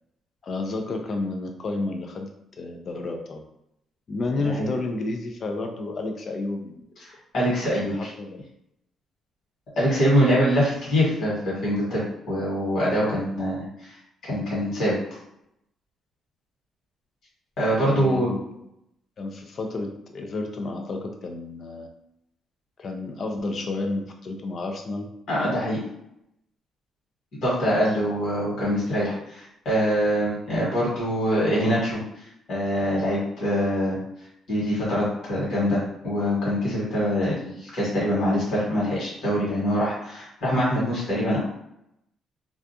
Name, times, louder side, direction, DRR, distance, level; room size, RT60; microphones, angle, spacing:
voice 1, 0.4-2.3 2.6-3.4 4.1-6.7 7.9-8.4 17.7-18.4 19.2-21.9 22.8-25.1, left 2 dB, 40° left, 4 dB, 0.4 m, -31 dB
voice 2, 7.3-8.1 9.8-13.9 14.2-15.0 17.6-18.3 25.3-25.8 27.4-32.0 32.5-34.0 34.5-41.4, equal, 60° left, -7 dB, 1.3 m, -24 dB
2.3 x 2.3 x 2.6 m, 0.80 s
cardioid pair, 140°, 0 cm